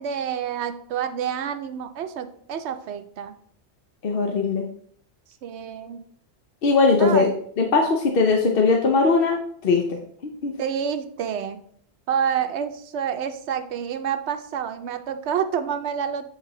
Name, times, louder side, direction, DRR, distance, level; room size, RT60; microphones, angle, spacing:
voice 1, 0.0-3.4 5.4-6.0 7.0-7.3 10.6-11.6 12.1-16.3, right 8 dB, 80° right, 8 dB, 0.9 m, -28 dB
voice 2, 4.0-4.6 6.6-7.3 7.6-10.5, left 4 dB, 60° left, 2 dB, 0.8 m, -20 dB
8.1 x 3.3 x 3.7 m, 0.63 s
omnidirectional pair, 1.1 m